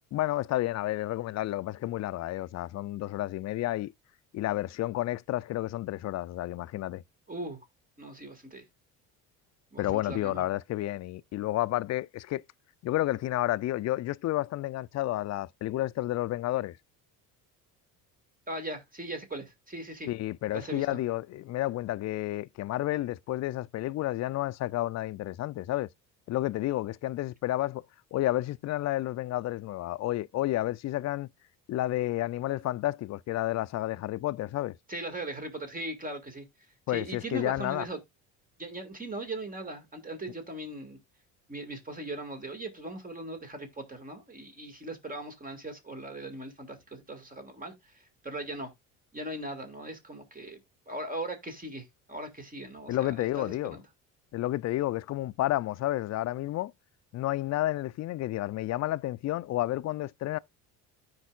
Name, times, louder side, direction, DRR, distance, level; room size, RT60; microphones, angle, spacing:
voice 1, 0.1-3.9 4.3-7.0 9.8-12.4 12.8-16.8 20.1-25.9 26.3-27.8 28.1-31.3 31.7-34.8 36.9-37.9 52.9-53.8 54.3-56.7 57.1-60.4, left 15 dB, 45° left, 0.4 m, -31 dB
voice 2, 7.3-7.6 8.0-8.6 9.7-10.4 18.5-20.1 20.5-20.9 34.9-36.5 36.9-38.0 38.6-41.0 41.5-48.7 49.1-50.6 50.9-53.8, right 1 dB, 20° right, 2.1 m, -39 dB
13.5 x 4.7 x 2.4 m
supercardioid pair, 85°, 38 cm